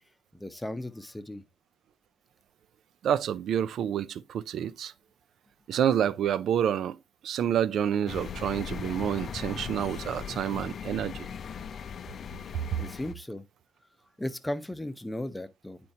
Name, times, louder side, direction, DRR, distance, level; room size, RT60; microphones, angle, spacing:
voice 1, 0.3-1.4 12.8-13.5 14.2-15.8, left 1 dB, 10° left, 0.9 m, -36 dB
voice 2, 3.0-4.9 5.7-7.0 7.2-11.3, right 9 dB, 70° right, 0.4 m, -28 dB
sound 1, 8.1-13.1, left 7 dB, 55° left, 0.5 m, -39 dB
10.5 x 4.3 x 2.8 m
cardioid pair, 90°, 0 cm